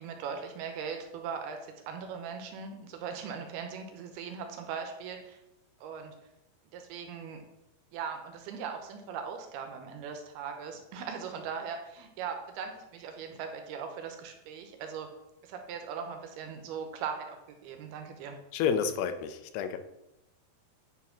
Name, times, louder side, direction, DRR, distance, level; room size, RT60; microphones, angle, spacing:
voice 1, 0.0-5.4 5.8-6.1 6.7-7.4 7.9-15.1 15.4-18.4, right 6 dB, 75° right, 5 dB, 2.8 m, -39 dB
voice 2, 18.5-19.8, left 7 dB, 85° left, 9 dB, 2.8 m, -30 dB
9.8 x 4.7 x 5.8 m, 0.92 s
omnidirectional pair, 4.7 m